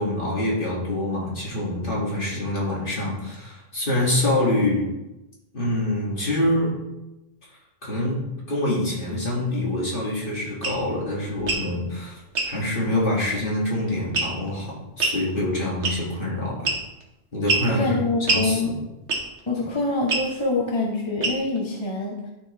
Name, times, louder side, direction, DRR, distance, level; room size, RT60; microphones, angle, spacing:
voice 1, 0.0-4.9 5.5-6.8 7.8-16.7 17.3-18.7, left 1 dB, 50° left, -5 dB, 2.5 m, -26 dB
sound 1, 10.6-10.8 11.4-11.7 12.3-12.5 14.1-14.5 15.0-15.2 15.8-16.2 16.6-17.0 17.5-17.7 18.3-18.5 19.1-19.4 20.1-20.3 21.2-21.6, right 3 dB, 85° right, 1.5 m, -24 dB
voice 2, 17.7-18.8 19.5-22.3, left 2 dB, 25° left, -2 dB, 1.0 m, -25 dB
12.5 x 4.6 x 3.4 m, 0.97 s
omnidirectional pair, 1.1 m